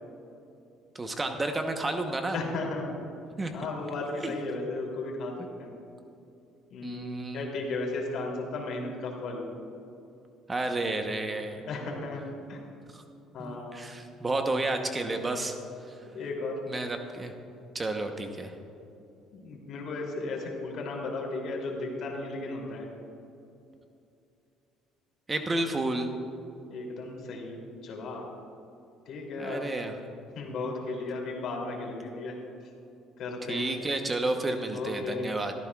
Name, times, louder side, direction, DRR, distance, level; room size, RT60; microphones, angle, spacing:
voice 1, 0.9-2.4 3.4-3.5 4.2-4.4 5.4-5.5 6.8-7.6 10.5-11.6 12.9-13.0 13.4-15.5 15.9-16.0 16.7-17.3 17.7-18.5 25.3-26.1 29.4-30.0 33.5-35.5, right 2 dB, 20° right, 5 dB, 0.9 m, -31 dB
voice 2, 2.3-2.9 3.5-5.3 5.6-5.7 6.7-9.5 11.7-12.2 12.5-12.6 13.3-13.9 16.1-16.5 19.3-22.9 26.7-27.6 27.8-28.2 29.1-29.6 30.3-32.3 33.2-33.6 34.7-35.3, left 3 dB, 60° left, -1 dB, 2.8 m, -35 dB
16.0 x 13.5 x 2.4 m, 2.7 s
cardioid pair, 110°, 0 cm